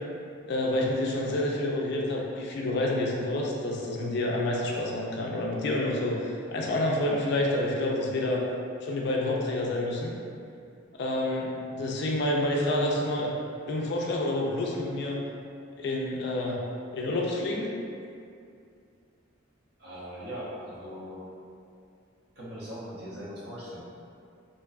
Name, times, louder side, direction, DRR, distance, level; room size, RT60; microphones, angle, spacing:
voice 1, 0.5-8.4 8.8-10.1 11.0-13.3 13.7-15.2 15.8-16.6 16.9-17.7, left 1 dB, 55° left, -2 dB, 0.3 m, -28 dB
voice 2, 19.8-21.2 22.4-23.8, equal, 50° right, -8 dB, 0.6 m, -40 dB
2.5 x 2.1 x 2.3 m, 2.4 s
head